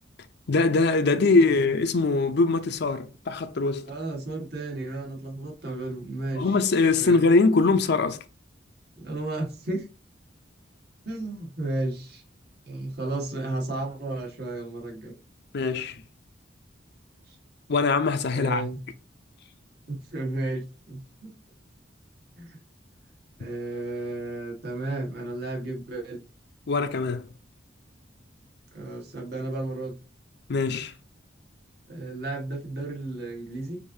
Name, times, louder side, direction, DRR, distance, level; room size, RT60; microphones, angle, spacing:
voice 1, 0.5-3.9 6.3-8.2 15.5-16.0 17.7-18.7 26.7-27.3 30.5-30.9, left 3 dB, 60° left, 0.6 m, -22 dB
voice 2, 3.9-6.7 7.0-7.2 9.0-9.9 11.0-12.2 12.6-15.1 17.3-17.4 18.3-18.8 19.9-21.3 22.4-22.6 23.4-26.2 28.7-29.9 31.9-33.8, right 2 dB, 60° right, 1.5 m, -33 dB
6.6 x 2.7 x 2.6 m
head